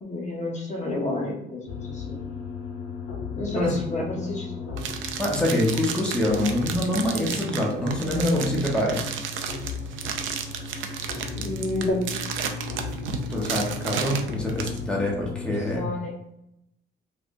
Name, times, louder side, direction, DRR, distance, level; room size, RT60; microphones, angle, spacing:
voice 1, 0.0-2.2 3.3-4.7 11.3-12.0 15.4-16.1, left 2 dB, 35° left, -2 dB, 0.8 m, -30 dB
sound 1, 1.7-15.8, left 3 dB, 90° left, 0.5 m, -36 dB
sound 2, 4.8-14.8, right 7 dB, 75° right, 0.4 m, -33 dB
voice 2, 5.2-9.0 13.3-15.9, left 1 dB, 5° left, -3 dB, 0.9 m, -25 dB
3.3 x 2.3 x 2.5 m, 0.79 s
cardioid pair, 90°, 20 cm